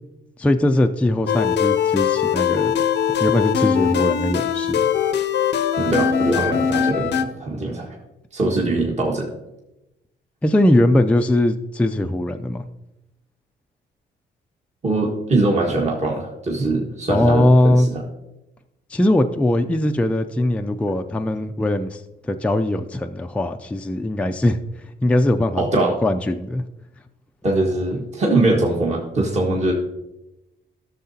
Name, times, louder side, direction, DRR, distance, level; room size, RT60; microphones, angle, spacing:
voice 1, 0.4-2.7 3.2-4.9 10.4-12.6 17.1-17.9 18.9-24.6 25.0-26.6, left 1 dB, 5° left, 5 dB, 0.4 m, -20 dB
sound 1, 1.3-7.2, left 8 dB, 60° left, 0.6 m, -21 dB
voice 2, 5.8-7.9 8.3-9.3 14.8-18.0 25.6-26.0 27.4-29.7, right 2 dB, 35° right, -1 dB, 1.6 m, -22 dB
13.5 x 6.7 x 2.8 m, 0.94 s
cardioid pair, 90°, 20 cm